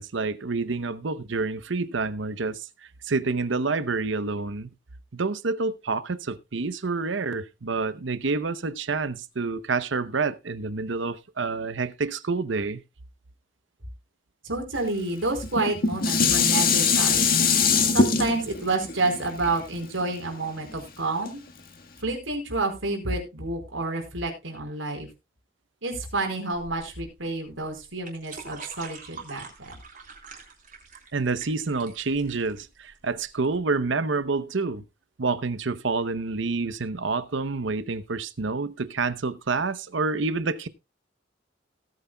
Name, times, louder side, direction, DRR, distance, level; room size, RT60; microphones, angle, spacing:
voice 1, 0.0-2.7 3.0-4.7 5.1-12.8 31.1-34.8 35.2-40.7, right 4 dB, 65° right, 0.8 m, -28 dB
voice 2, 14.4-17.4 17.9-21.4 22.0-25.1 25.8-29.7, right 2 dB, 80° right, 4.4 m, -29 dB
Dishes pots and pans, 15.4-20.7 21.2-21.3, left 5 dB, 50° left, 1.6 m, -22 dB
sound 1, 26.5-33.6, right 5 dB, 45° right, 3.7 m, -45 dB
17.5 x 9.1 x 2.3 m
head